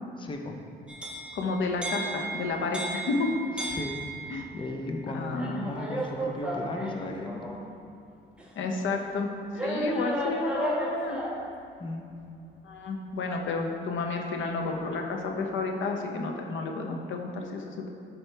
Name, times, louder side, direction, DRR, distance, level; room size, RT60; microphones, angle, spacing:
voice 1, 0.2-0.6 3.6-3.9 4.5-7.5 11.8-12.0, left 2 dB, 25° left, 2 dB, 0.8 m, -36 dB
sound 1, 0.9-4.5 5.3-7.7 8.4-8.5 9.5-11.5, right 1 dB, 5° right, 1.3 m, -34 dB
voice 2, 1.3-3.3 4.3-4.5 5.1-5.7 8.6-9.3 9.6-11.2 12.6-17.9, left 3 dB, 75° left, 2 dB, 1.0 m, -31 dB
12.0 x 4.4 x 3.4 m, 2.4 s
cardioid pair, 90°, 20 cm